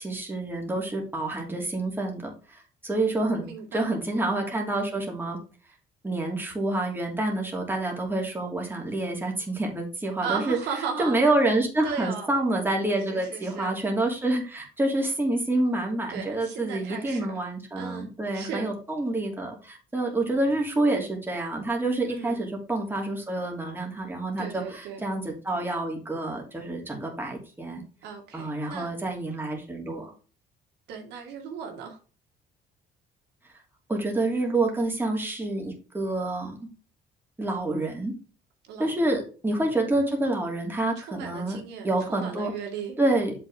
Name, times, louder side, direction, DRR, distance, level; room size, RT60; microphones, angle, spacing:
voice 1, 0.0-5.4 6.0-10.6 11.0-27.8 28.3-30.1 33.9-36.6 37.4-38.1 38.8-41.6 41.8-42.5 43.0-43.3, right 2 dB, 10° right, 2.7 m, -28 dB
voice 2, 3.4-3.9 10.2-11.2 11.8-12.3 13.1-13.7 16.1-17.4 17.8-18.1 18.3-18.7 22.1-22.4 24.4-25.0 28.0-28.9 30.9-32.0 38.7-39.2 41.0-42.9, right 6 dB, 85° right, 2.1 m, -36 dB
7.4 x 5.9 x 3.5 m
cardioid pair, 110°, 17 cm